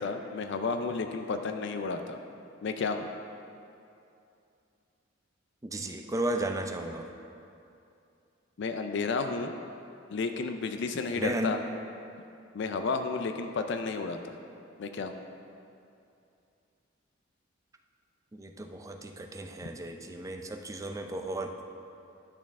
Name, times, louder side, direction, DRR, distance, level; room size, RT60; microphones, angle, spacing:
voice 1, 0.0-2.2 2.6-3.1 8.6-9.5 10.1-11.6 12.5-14.4 14.8-15.1, left 4 dB, 60° left, 6 dB, 0.4 m, -32 dB
voice 2, 5.6-7.1 11.1-11.7 18.3-21.5, right 1 dB, 15° right, 4 dB, 0.5 m, -34 dB
10.5 x 6.2 x 3.6 m, 2.6 s
head